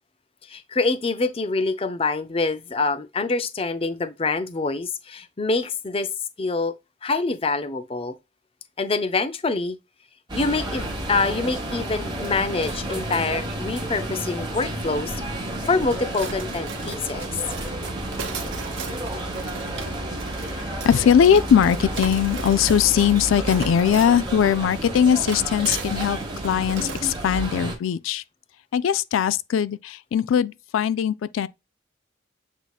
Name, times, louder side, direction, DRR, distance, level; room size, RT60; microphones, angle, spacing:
voice 1, 0.5-6.1 6.4-6.7 7.0-8.1 8.8-9.8 10.3-15.1 15.7-17.3, left 3 dB, 30° left, 0.5 m, -25 dB
sound 1, 10.3-27.8, right 1 dB, 25° right, 1.3 m, -31 dB
sound 2, 16.1-27.2, right 5 dB, 75° right, 1.0 m, -38 dB
voice 2, 20.8-26.2 26.4-28.2 28.7-31.5, left 8 dB, 90° left, 0.3 m, -20 dB
8.0 x 2.8 x 2.3 m
head